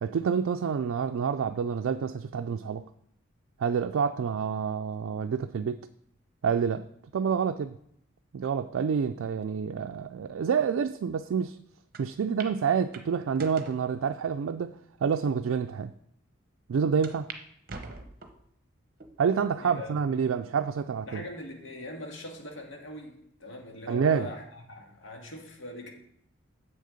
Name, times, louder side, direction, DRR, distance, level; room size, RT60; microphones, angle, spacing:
voice 1, 0.0-2.8 3.6-5.9 6.4-6.9 7.1-7.8 8.3-11.6 12.0-14.8 15.0-15.9 16.7-17.3 19.2-21.2 23.9-24.3, right 6 dB, 85° right, 0.4 m, -28 dB
voice 2, 5.0-5.4 19.6-19.9 20.2-20.3 21.1-25.9, left 1 dB, 70° left, 1.8 m, -42 dB
sound 1, 11.9-12.0 12.4-12.5 12.9-13.8 14.5-14.6 15.3-15.4 15.7-15.8 17.0-17.4 17.7-18.5 19.0-19.4 20.0-20.1 21.2-21.6, right 4 dB, 45° right, 0.8 m, -43 dB
7.5 x 6.6 x 5.0 m
head